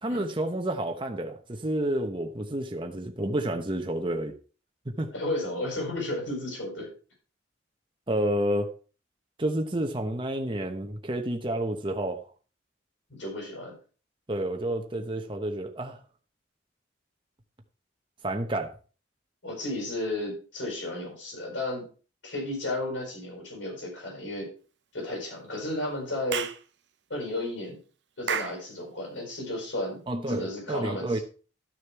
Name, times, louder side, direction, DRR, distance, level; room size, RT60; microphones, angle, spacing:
voice 1, 0.0-4.4 4.8-5.1 8.1-8.7 9.4-12.2 14.3-16.0 18.2-18.7 30.1-31.2, right 1 dB, 25° right, 1.0 m, -30 dB
voice 2, 5.1-6.9 13.1-13.8 19.4-21.9 22.2-24.5 24.9-26.5 27.1-27.8 28.2-30.0 30.3-31.2, left 1 dB, 90° left, 5.8 m, -33 dB
Clapping / Chirp tweet, 26.3-26.6 28.3-28.6, right 7 dB, 70° right, 0.7 m, -30 dB
13.0 x 6.7 x 4.6 m
head